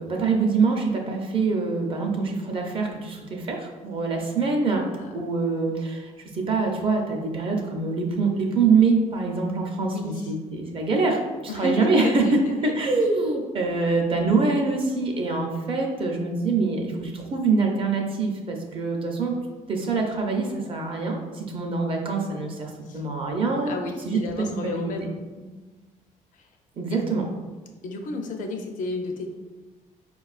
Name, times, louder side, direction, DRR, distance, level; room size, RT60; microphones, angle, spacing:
voice 1, 0.0-4.9 5.1-12.3 12.6-19.4 19.7-23.8 24.0-24.9 26.8-27.2, right 4 dB, 40° right, 1 dB, 0.5 m, -25 dB
voice 2, 9.8-10.2 11.5-12.4 12.6-13.1 22.9-23.0 23.6-25.5 27.8-29.4, left 2 dB, 65° left, 4 dB, 0.5 m, -32 dB
4.9 x 2.3 x 2.3 m, 1.3 s
cardioid pair, 150°, 14 cm